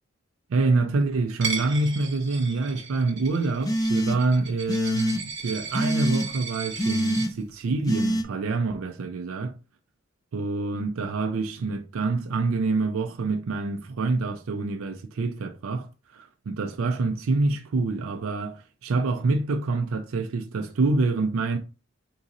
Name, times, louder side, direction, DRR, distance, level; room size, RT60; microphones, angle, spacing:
voice 1, 0.5-9.5 10.3-21.6, right 3 dB, 80° right, 0.4 m, -26 dB
Coin (dropping), 1.4-7.3, right 5 dB, 60° right, 0.9 m, -36 dB
sound 1, 3.6-4.4 4.7-5.2 5.7-6.3 6.8-7.3 7.9-8.2, equal, 20° left, 0.3 m, -25 dB
3.7 x 2.5 x 4.0 m
head